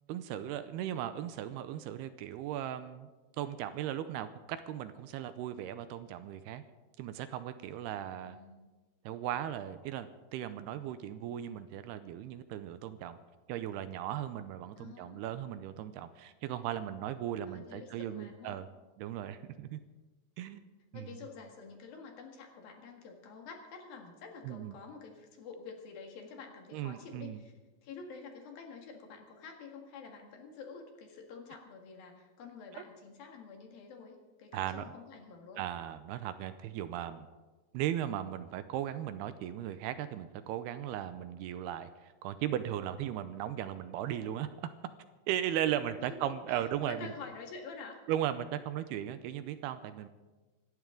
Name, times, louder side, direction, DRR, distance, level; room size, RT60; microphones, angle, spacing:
voice 1, 0.1-3.1 3.4-6.6 7.0-8.4 9.1-13.2 13.5-18.7 19.0-19.8 20.4-21.1 24.4-24.7 26.7-27.4 32.7-32.8 34.5-34.9 35.6-37.3 37.7-44.5 45.3-47.1 48.1-50.1, right 11 dB, 80° right, 11 dB, 2.6 m, -37 dB
voice 2, 8.2-8.7 14.8-15.3 17.5-18.6 20.4-20.5 20.9-27.5 27.8-35.6 46.1-48.0, left 5 dB, 65° left, 3 dB, 3.4 m, -48 dB
26.0 x 12.5 x 3.8 m, 1.2 s
omnidirectional pair, 4.8 m